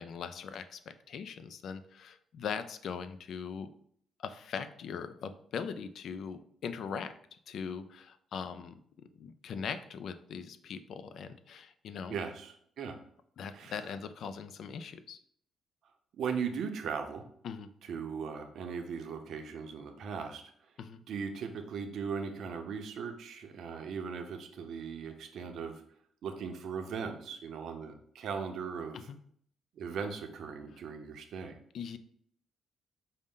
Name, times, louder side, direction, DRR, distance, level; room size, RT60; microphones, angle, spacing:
voice 1, 0.0-3.7 4.2-7.1 7.5-12.2 13.4-15.2 17.4-17.7 20.8-21.0 28.9-29.2 31.7-32.0, left 6 dB, 65° left, 12 dB, 0.3 m, -40 dB
voice 2, 12.1-13.0 13.5-13.8 16.1-17.2 17.8-20.4 21.1-25.8 26.2-29.0 29.8-31.6, right 6 dB, 70° right, 5 dB, 0.6 m, -38 dB
5.2 x 2.1 x 3.6 m, 0.65 s
cardioid pair, 90°, 0 cm